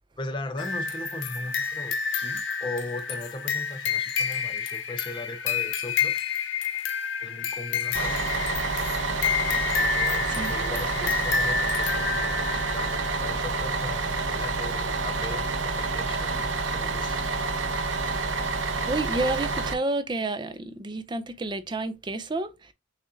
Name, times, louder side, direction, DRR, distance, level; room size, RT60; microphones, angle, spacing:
voice 1, 0.2-6.1 7.2-8.2 9.7-17.3, left 2 dB, 25° left, 0.6 m, -38 dB
sound 1, 0.6-13.2, left 6 dB, 85° left, 0.8 m, -29 dB
Bus, 7.9-19.7, right 3 dB, 85° right, 0.7 m, -28 dB
voice 2, 18.8-22.7, right 2 dB, 25° right, 0.4 m, -30 dB
6.2 x 2.5 x 2.7 m
head